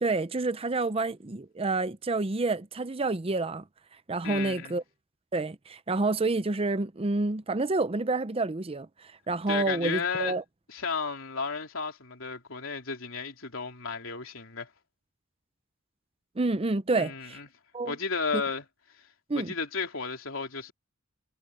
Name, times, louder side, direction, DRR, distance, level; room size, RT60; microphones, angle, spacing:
voice 1, 0.0-3.6 4.1-4.8 5.3-10.4 16.4-17.4 17.7-18.0 18.3-18.4 19.3-19.5, right 3 dB, 30° right, 0.6 m, -28 dB
voice 2, 4.2-4.8 9.5-10.4 10.7-14.7 16.9-17.5 17.8-18.6 19.3-20.7, left 5 dB, 70° left, 3.7 m, -33 dB
head